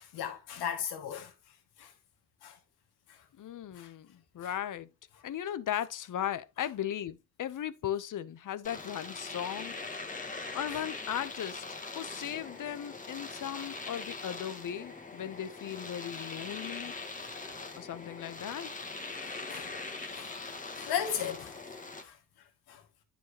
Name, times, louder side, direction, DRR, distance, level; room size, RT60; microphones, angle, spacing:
voice 1, 0.0-1.3 1.8-1.9 2.4-2.6 3.1-3.2 3.7-3.9 4.4-4.5 10.7-10.8 12.4-12.5 19.2-21.6 22.0-22.8, left 9 dB, 80° left, 2.3 m, -38 dB
voice 2, 3.4-4.9 5.2-9.7 10.5-16.9 17.8-18.7, left 10 dB, 55° left, 1.0 m, -37 dB
Domestic sounds home sounds, 8.6-22.1, left 3 dB, 20° left, 1.7 m, -42 dB
9.3 x 6.1 x 3.0 m
supercardioid pair, 70°, 38 cm